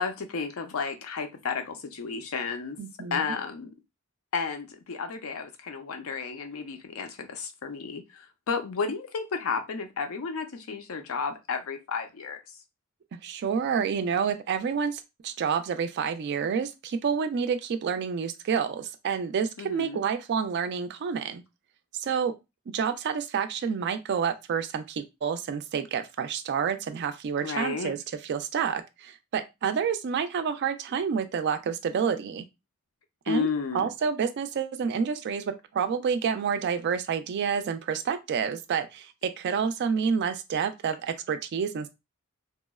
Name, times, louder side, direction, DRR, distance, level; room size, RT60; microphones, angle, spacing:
voice 1, 0.0-2.8 3.1-3.7 4.3-12.4 19.6-20.0 27.4-27.9 33.3-33.9, left 5 dB, 80° left, 0.5 m, -32 dB
voice 2, 2.8-3.4 13.2-21.4 21.9-22.4 22.7-32.4 33.3-41.9, right 6 dB, 55° right, 0.3 m, -29 dB
2.9 x 2.0 x 2.2 m
head